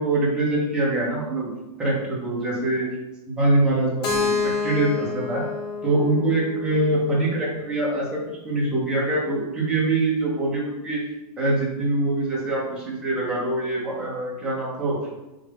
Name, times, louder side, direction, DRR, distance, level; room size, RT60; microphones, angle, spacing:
voice 1, 0.0-1.5 1.8-2.8 3.3-5.4 5.8-8.2 8.4-11.0 11.4-15.0, right 2 dB, 5° right, -6 dB, 0.7 m, -24 dB
Keyboard (musical), 4.0-7.9, left 4 dB, 85° left, 0.9 m, -29 dB
3.7 x 3.4 x 3.4 m, 1.0 s
supercardioid pair, 175°, 20 cm